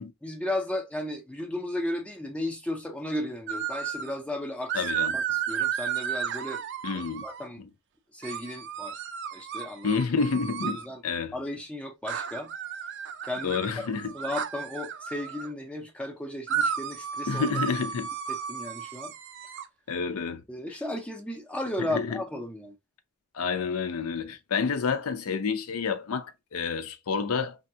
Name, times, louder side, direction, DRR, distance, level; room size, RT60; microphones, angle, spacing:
voice 1, 0.0-4.8 5.1-6.6 6.9-7.6 8.1-9.0 9.3-9.9 10.6-11.0 11.3-12.5 13.2-17.5 18.3-19.1 20.5-22.8, left 1 dB, 5° left, 0.5 m, -35 dB
sound 1, 3.5-4.2 4.7-7.5 8.2-10.9 12.1-15.5 16.5-19.6, right 8 dB, 55° right, 0.4 m, -33 dB
voice 2, 4.7-5.2 6.8-7.2 7.6-7.7 9.8-10.8 11.0-11.3 13.4-14.1 17.3-18.1 19.9-20.4 21.8-22.2 23.3-27.6, left 5 dB, 70° left, 0.5 m, -29 dB
3.4 x 2.3 x 2.7 m
head